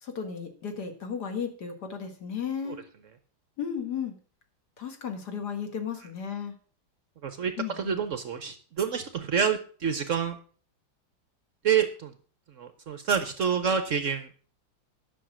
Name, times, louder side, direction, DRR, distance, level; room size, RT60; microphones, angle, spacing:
voice 1, 0.0-2.8 3.6-4.1 4.8-6.5 7.6-8.0, left 7 dB, 60° left, 5 dB, 2.0 m, -34 dB
voice 2, 7.2-10.4 11.6-12.1 12.6-14.3, right 7 dB, 60° right, 9 dB, 0.8 m, -28 dB
10.5 x 6.4 x 6.1 m, 0.43 s
omnidirectional pair, 2.1 m